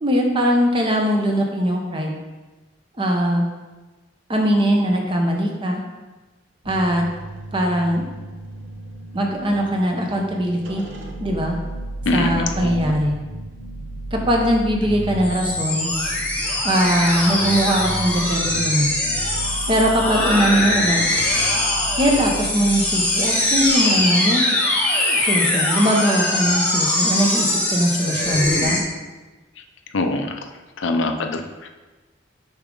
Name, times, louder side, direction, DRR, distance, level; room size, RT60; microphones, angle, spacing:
voice 1, 0.0-2.2 3.0-3.4 4.3-5.8 6.7-7.0 7.5-8.0 9.1-10.8 11.2-11.6 12.1-13.2 14.1-15.9 16.6-19.3 19.7-21.1 22.0-24.4 25.2-28.8, equal, 25° right, 1 dB, 0.8 m, -20 dB
sound 1, 6.6-23.7, right 1 dB, 75° right, 0.8 m, -34 dB
voice 2, 12.1-12.9 29.9-30.4 30.8-31.7, left 2 dB, 80° left, 5 dB, 0.6 m, -24 dB
sound 2, 15.2-28.8, left 1 dB, 10° left, 0.9 m, -22 dB
6.8 x 4.8 x 3.8 m, 1.2 s
head